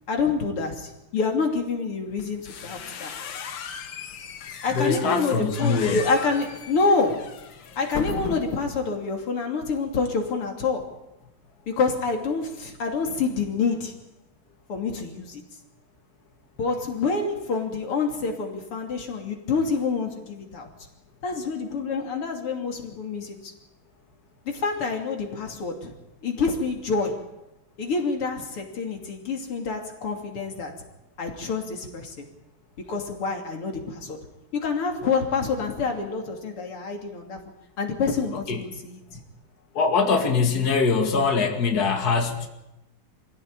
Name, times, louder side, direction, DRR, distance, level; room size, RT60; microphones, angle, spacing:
voice 1, 0.1-3.1 4.6-7.4 7.8-10.9 11.7-13.9 14.7-15.4 16.6-20.7 21.2-23.5 24.5-25.9 26.2-27.3 27.8-30.8 31.2-32.3 32.8-34.3 34.5-37.4 37.8-39.2, left 4 dB, 85° left, 3 dB, 3.8 m, -27 dB
sound 1, 2.2-8.7, left 6 dB, 60° left, 2.0 m, -37 dB
voice 2, 4.7-6.0 38.5-38.6 39.7-42.5, left 4 dB, 45° left, 3 dB, 2.8 m, -22 dB
25.5 x 16.5 x 8.9 m, 0.92 s
omnidirectional pair, 2.4 m